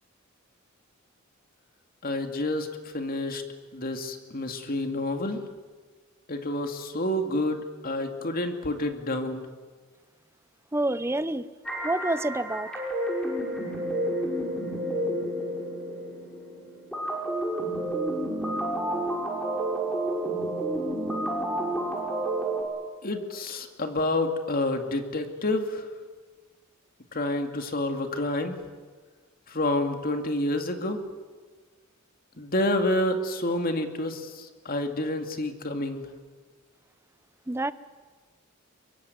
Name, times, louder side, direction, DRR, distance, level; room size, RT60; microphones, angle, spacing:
voice 1, 2.0-2.7 2.9-3.4 3.7-5.4 6.3-9.5 23.0-25.8 27.1-28.6 29.5-31.0 32.4-36.1, left 1 dB, 45° left, 6 dB, 2.4 m, -28 dB
voice 2, 10.7-11.5 11.8-12.7 37.5-37.7, right 2 dB, 10° right, 14 dB, 0.7 m, -27 dB
sound 1, 11.7-22.6, right 1 dB, 5° left, 6.3 m, -30 dB
23.5 x 23.0 x 9.4 m, 1.4 s
head